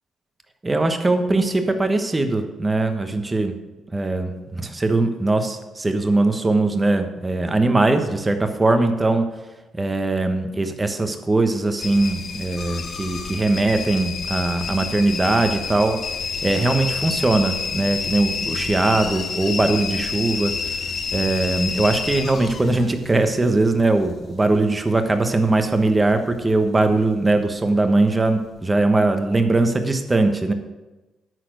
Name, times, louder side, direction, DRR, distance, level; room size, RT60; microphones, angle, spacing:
voice 1, 0.6-3.5 3.9-9.3 9.7-16.0 16.4-20.5 21.1-30.5, right 2 dB, 20° right, 7 dB, 1.2 m, -20 dB
sound 1, 11.8-26.7 26.9-27.6 28.1-28.6 29.0-29.1, left 5 dB, 55° left, 1.0 m, -29 dB
11.0 x 4.3 x 8.0 m, 1.1 s
cardioid pair, 90°, 0 cm